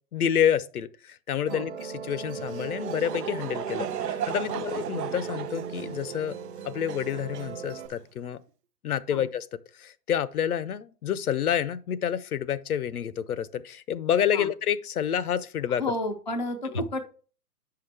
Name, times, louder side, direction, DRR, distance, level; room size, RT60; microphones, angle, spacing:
voice 1, 0.1-6.4 6.6-8.4 8.8-9.5 9.7-15.8, left 9 dB, 65° left, 0.7 m, -28 dB
Musical instrument, 1.5-7.9, right 6 dB, 40° right, 0.8 m, -38 dB
Laughter / Crowd, 2.3-8.0, right 10 dB, 75° right, 0.8 m, -36 dB
voice 2, 15.8-17.0, left 1 dB, 30° left, 0.4 m, -31 dB
8.5 x 5.8 x 3.3 m
hypercardioid pair, 170°, 49 cm